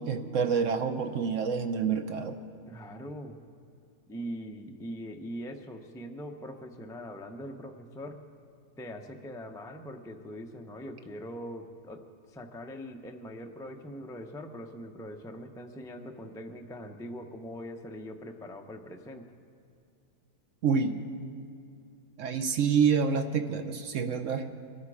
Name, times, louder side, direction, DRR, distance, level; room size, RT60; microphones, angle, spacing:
voice 1, 0.0-2.4 20.6-21.1 22.2-24.5, right 6 dB, 60° right, 8 dB, 0.9 m, -27 dB
voice 2, 2.7-3.4 4.1-8.2 8.8-12.0 12.3-19.3, equal, 5° left, 4 dB, 0.4 m, -42 dB
23.0 x 12.5 x 4.9 m, 2.3 s
omnidirectional pair, 1.7 m